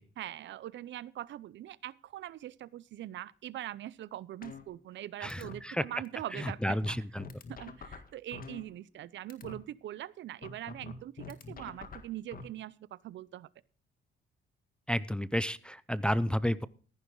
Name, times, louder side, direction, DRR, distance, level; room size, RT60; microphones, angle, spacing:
voice 1, 0.2-7.0 7.5-13.5, right 13 dB, 70° right, 21 dB, 0.6 m, -42 dB
sound 1, 4.4-5.0 5.3-5.5 6.0-6.1 6.4-9.0 9.3-9.5 10.4-12.4, left 4 dB, 45° left, 1.9 m, -45 dB
voice 2, 5.2-5.8 6.4-7.2 14.9-16.7, equal, 5° left, 16 dB, 0.6 m, -31 dB
14.5 x 11.0 x 3.8 m, 0.39 s
cardioid pair, 90°, 20 cm